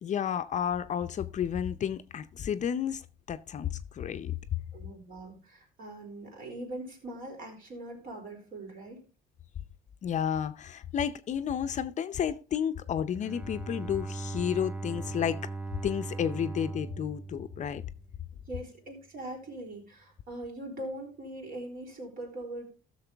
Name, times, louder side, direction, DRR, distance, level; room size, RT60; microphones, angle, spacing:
voice 1, 0.0-4.3 10.0-15.4 15.8-17.8, left 8 dB, 45° left, 0.6 m, -31 dB
voice 2, 4.7-9.0 18.5-22.7, right 1 dB, 55° right, 4.1 m, -41 dB
Bowed string instrument, 13.2-18.4, right 3 dB, 5° right, 0.7 m, -39 dB
14.5 x 6.6 x 3.4 m
cardioid pair, 110°, 17 cm